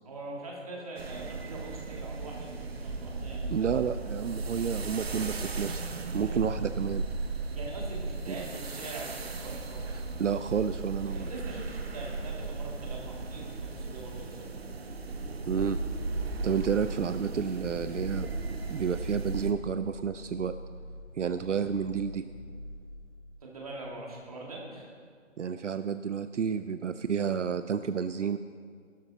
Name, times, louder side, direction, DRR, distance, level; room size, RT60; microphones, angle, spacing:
voice 1, 0.0-3.6 6.2-6.4 7.6-10.0 11.1-14.6 23.4-24.9, right 2 dB, 30° right, -3 dB, 2.4 m, -42 dB
sound 1, 1.0-19.5, right 3 dB, 55° right, 1.0 m, -36 dB
voice 2, 3.5-5.8 6.1-7.0 8.3-8.4 9.9-11.3 15.5-15.8 16.4-18.3 18.7-20.5 21.2-22.2 25.4-28.4, right 7 dB, 70° right, 11 dB, 0.6 m, -30 dB
sound 2, 10.6-24.3 24.6-24.7, left 1 dB, 60° left, 2.1 m, -48 dB
16.0 x 13.0 x 4.2 m, 2.1 s
hypercardioid pair, 180°, 37 cm